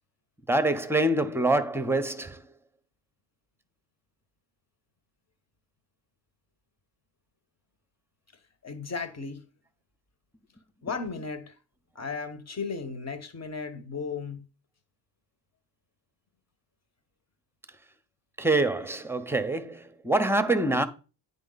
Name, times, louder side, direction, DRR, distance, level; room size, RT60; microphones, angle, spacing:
voice 1, 0.5-2.4 18.4-20.9, right 2 dB, 5° right, 0.9 m, -25 dB
voice 2, 8.6-9.4 10.8-11.5 11.9-14.4, left 4 dB, 35° left, 1.4 m, -35 dB
9.0 x 5.4 x 4.0 m
cardioid pair, 85°, 45 cm